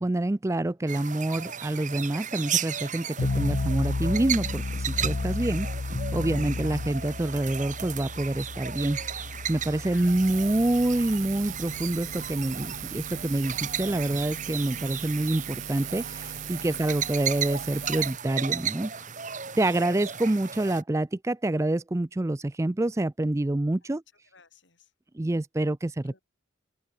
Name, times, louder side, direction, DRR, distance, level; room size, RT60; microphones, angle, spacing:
voice 1, 0.0-5.7 6.1-9.0 9.5-18.9 19.6-24.0 25.1-26.1, right 1 dB, 15° right, 0.4 m, -27 dB
sound 1, 0.9-20.8, right 8 dB, 40° right, 2.3 m, -35 dB
sound 2, 3.2-14.3, left 3 dB, 80° left, 0.8 m, -33 dB
voice 2, 9.8-10.4 16.0-16.2 16.7-17.3 19.7-20.1 23.8-24.0 24.3-24.9 26.0-26.2, left 5 dB, 65° left, 6.9 m, -56 dB
Buzz, 9.8-18.2, right 8 dB, 85° right, 2.6 m, -39 dB
open air
head